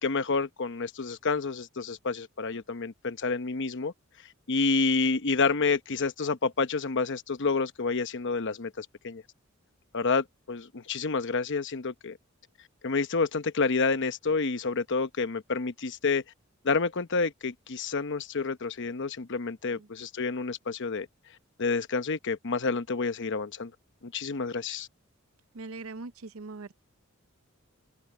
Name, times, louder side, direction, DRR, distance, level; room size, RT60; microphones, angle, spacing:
voice 1, 0.0-3.9 4.5-9.2 9.9-12.2 12.8-16.2 16.6-21.1 21.6-23.7 24.0-24.9, left 4 dB, 60° left, 0.9 m, -29 dB
voice 2, 25.5-26.8, right 3 dB, 85° right, 0.7 m, -41 dB
head